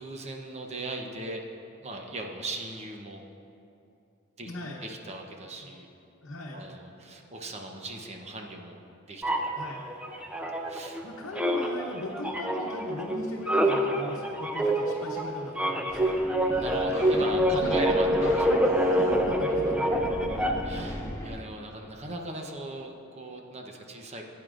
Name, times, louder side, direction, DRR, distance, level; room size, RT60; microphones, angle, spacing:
voice 1, 0.0-1.5 1.8-3.2 4.4-4.5 4.8-5.9 6.5-9.4 10.7-11.0 16.0-16.3 16.6-18.1 18.3-18.5 20.7-24.2, right 2 dB, 30° right, 2 dB, 0.8 m, -38 dB
voice 2, 4.5-4.8 6.2-6.6 9.5-9.8 10.8-16.1 17.5-17.7 18.2-20.8, left 1 dB, 75° left, -3 dB, 0.9 m, -38 dB
sound 1, 9.2-11.0 11.3-20.8, right 1 dB, 5° right, 0.5 m, -26 dB
sound 2, 15.9-21.4, left 1 dB, 15° left, 1.5 m, -38 dB
15.5 x 9.4 x 2.5 m, 2.7 s
head